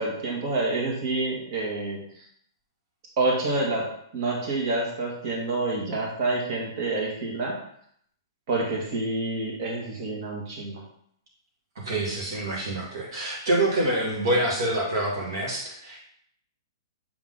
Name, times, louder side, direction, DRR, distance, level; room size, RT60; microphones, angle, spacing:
voice 1, 0.0-2.2 3.2-3.9 4.1-7.6 8.5-10.8, right 2 dB, 50° right, -2 dB, 2.0 m, -28 dB
voice 2, 11.8-16.1, right 1 dB, 70° right, -3 dB, 1.8 m, -26 dB
7.1 x 3.7 x 3.7 m, 0.67 s
hypercardioid pair, 140°, 2 cm